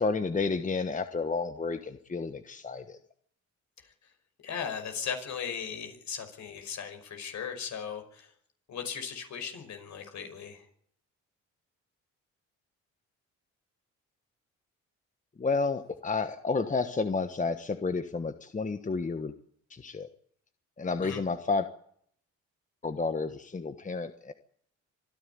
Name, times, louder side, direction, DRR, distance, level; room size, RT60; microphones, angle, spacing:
voice 1, 0.0-3.0 15.4-19.3 19.7-20.1 20.8-21.7 22.8-24.3, left 4 dB, 25° left, 9 dB, 1.3 m, -31 dB
voice 2, 3.8-4.1 4.4-8.3 8.7-10.6 21.0-21.2, left 7 dB, 65° left, 6 dB, 5.6 m, -38 dB
25.5 x 11.5 x 9.5 m, 0.65 s
cardioid pair, 90°, 30 cm